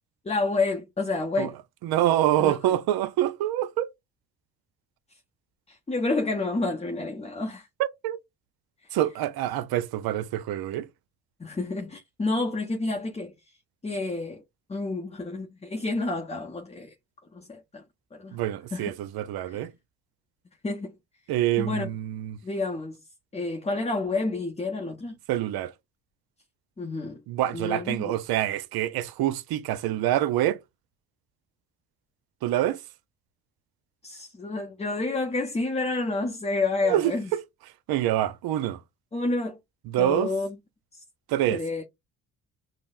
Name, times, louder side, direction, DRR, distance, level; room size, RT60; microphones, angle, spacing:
voice 1, 0.2-1.5 2.4-2.5 5.7-7.7 11.4-13.3 13.8-14.4 14.7-16.9 17.3-17.8 18.1-18.4 18.7-18.9 19.5-19.6 20.6-20.9 21.6-21.9 22.4-23.0 23.3-25.2 26.8-27.2 27.5-28.1 34.0-37.3 39.1-39.6 40.0-40.6 41.5-41.8, left 3 dB, 15° left, 0.7 m, -29 dB
voice 2, 1.8-3.9 7.8-8.2 8.9-10.9 18.3-19.7 21.3-22.4 25.3-25.7 27.3-30.6 32.4-32.8 36.8-37.4 37.9-38.8 39.9-40.3 41.3-41.6, right 13 dB, 65° right, 0.6 m, -26 dB
5.3 x 2.1 x 2.4 m
hypercardioid pair, 55°, 40 cm